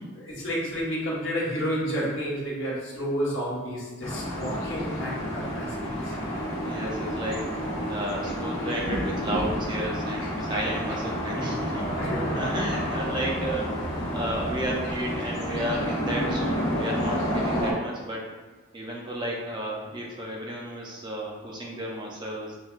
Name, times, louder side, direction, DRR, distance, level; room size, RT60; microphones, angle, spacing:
voice 1, 0.2-6.1 12.0-12.4, equal, 65° left, -6 dB, 1.1 m, -30 dB
sound 1, 4.0-17.7, equal, 90° left, 1.0 m, -30 dB
voice 2, 6.6-7.5 7.9-11.9 12.3-18.3 18.7-22.6, right 1 dB, 20° right, -2 dB, 0.6 m, -33 dB
5.9 x 2.3 x 2.4 m, 1.3 s
head